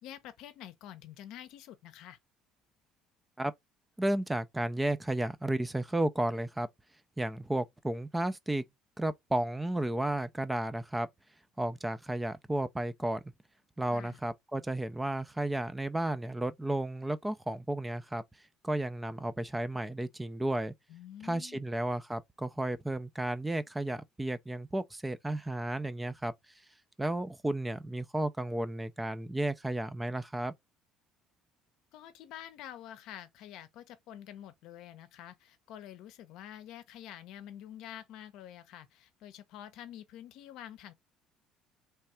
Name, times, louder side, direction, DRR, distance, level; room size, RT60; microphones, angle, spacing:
voice 1, 0.0-2.2 13.9-14.2 20.9-21.7 31.9-40.9, left 11 dB, 75° left, 0.6 m, -48 dB
voice 2, 4.0-6.7 7.2-8.6 9.0-11.1 11.6-13.3 13.8-18.2 18.6-20.7 21.2-26.3 27.0-30.5, right 1 dB, 10° right, 0.4 m, -33 dB
3.3 x 2.3 x 4.2 m
supercardioid pair, 100°, 0 cm